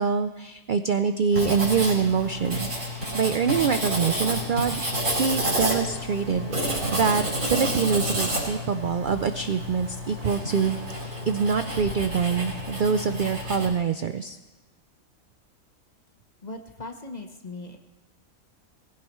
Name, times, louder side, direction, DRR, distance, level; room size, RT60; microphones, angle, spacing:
voice 1, 0.0-4.8 5.1-14.4, right 6 dB, 60° right, 9 dB, 0.5 m, -25 dB
Writing, 1.3-13.7, equal, 80° right, 4.8 m, -30 dB
voice 2, 16.4-17.8, left 2 dB, 35° left, 4 dB, 1.0 m, -39 dB
20.0 x 16.0 x 3.1 m, 1.2 s
omnidirectional pair, 1.4 m